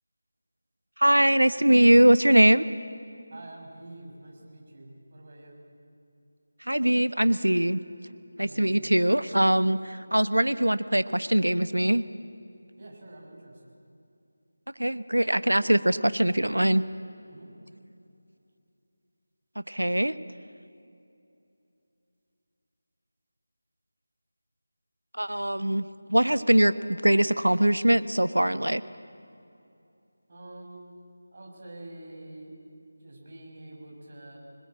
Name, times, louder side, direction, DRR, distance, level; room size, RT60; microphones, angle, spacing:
voice 1, 1.0-2.6 6.7-7.8 8.4-12.0 14.8-16.8 19.6-20.1 25.2-28.8, right 1 dB, 85° right, 15 dB, 1.0 m, -22 dB
voice 2, 3.3-5.6 8.4-8.8 12.8-13.7 17.3-17.5 30.3-30.8 31.3-32.5 33.0-34.4, right 1 dB, 40° right, -1 dB, 6.2 m, -46 dB
25.0 x 20.5 x 8.7 m, 2.7 s
figure-of-eight pair, 165°, 0 cm